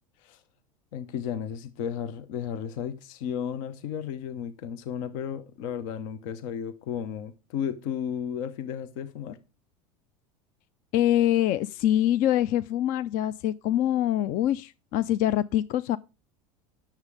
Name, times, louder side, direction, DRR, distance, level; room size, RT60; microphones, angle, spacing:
voice 1, 0.9-9.4, left 8 dB, 65° left, 0.9 m, -34 dB
voice 2, 10.9-16.0, left 12 dB, 50° left, 0.5 m, -24 dB
9.7 x 7.4 x 4.9 m
supercardioid pair, 105°, 18 cm